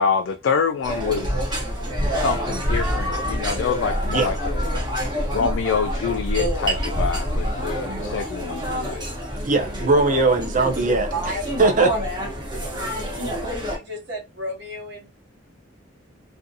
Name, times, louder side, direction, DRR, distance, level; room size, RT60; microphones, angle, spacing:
voice 1, 0.0-1.6 2.1-4.6 5.3-9.0, left 6 dB, 65° left, 0.3 m, -26 dB
sound 1, 0.8-13.8, equal, 20° right, 0.8 m, -28 dB
sound 2, 1.2-7.5, equal, 15° left, 0.5 m, -27 dB
voice 2, 9.4-11.1 11.6-11.9, right 3 dB, 40° right, 0.5 m, -19 dB
voice 3, 11.1-11.6 11.9-15.1, equal, 65° right, 1.2 m, -34 dB
2.5 x 2.2 x 2.6 m
head